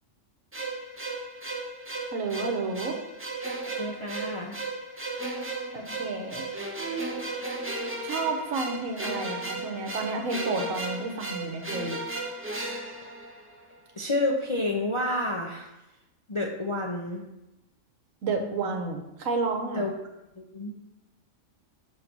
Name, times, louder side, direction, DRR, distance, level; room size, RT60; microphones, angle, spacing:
sound 1, 0.5-13.8, right 2 dB, 15° right, 0.5 m, -35 dB
voice 1, 2.1-2.9 5.7-6.4 8.0-12.0 18.2-19.8, right 3 dB, 70° right, 4 dB, 1.3 m, -31 dB
voice 2, 3.6-4.6 14.0-15.7 16.3-17.2 19.7-19.9 20.4-20.7, left 1 dB, 35° left, 0 dB, 0.5 m, -29 dB
5.8 x 3.9 x 6.0 m, 0.93 s
omnidirectional pair, 1.5 m